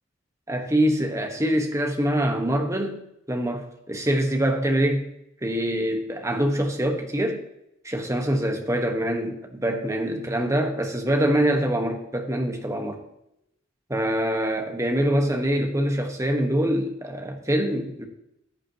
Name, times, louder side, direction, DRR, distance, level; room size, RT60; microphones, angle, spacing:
voice 1, 0.5-3.0 3.3-5.1 5.4-7.4 7.8-13.0 13.9-18.1, right 1 dB, 15° right, 1.3 m, -24 dB
14.5 x 8.5 x 2.9 m
head